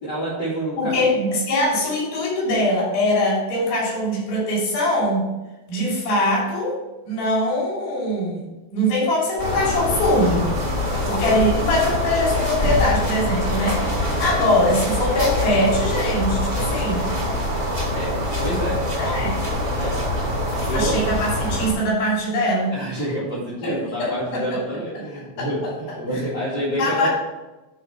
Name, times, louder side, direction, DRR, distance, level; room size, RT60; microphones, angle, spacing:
voice 1, 0.0-1.0 10.8-11.2 17.9-18.9 19.7-21.0 22.7-27.1, right 1 dB, 30° left, -10 dB, 2.2 m, -28 dB
voice 2, 0.7-5.3 5.7-6.8 7.0-8.4 8.7-10.5 11.1-17.1 19.0-19.4 20.7-22.7 23.6-24.6 25.4-25.7 26.8-27.1, left 1 dB, 80° left, -4 dB, 5.2 m, -22 dB
sound 1, 9.4-21.7, left 1 dB, 30° right, 0.9 m, -24 dB
9.4 x 3.9 x 5.7 m, 1.0 s
omnidirectional pair, 4.7 m